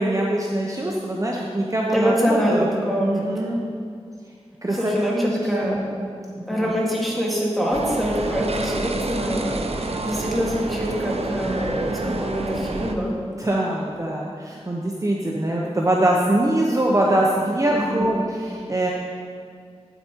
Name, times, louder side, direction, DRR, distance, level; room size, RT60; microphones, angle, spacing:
voice 1, 0.0-2.7 3.0-3.6 4.6-6.7 13.4-18.9, right 1 dB, 30° right, -2 dB, 0.9 m, -23 dB
voice 2, 1.9-3.1 4.7-5.8 6.5-13.1 17.7-18.1, equal, ahead, -5 dB, 2.3 m, -24 dB
sound 1, 7.7-12.9, right 2 dB, 65° right, 0.7 m, -28 dB
9.1 x 8.2 x 4.6 m, 2.2 s
wide cardioid pair, 60°, 11 cm